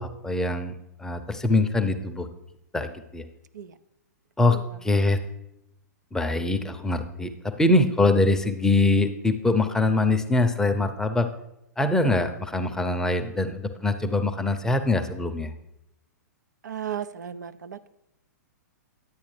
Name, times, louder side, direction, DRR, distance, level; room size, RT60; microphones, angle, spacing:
voice 1, 0.0-2.3 2.7-3.2 4.4-5.2 6.1-11.3 11.8-15.5, left 2 dB, 5° left, 7 dB, 0.6 m, -23 dB
voice 2, 16.6-17.9, right 9 dB, 75° right, 12 dB, 0.4 m, -35 dB
10.5 x 8.4 x 3.3 m, 0.86 s
figure-of-eight pair, 110°, 10 cm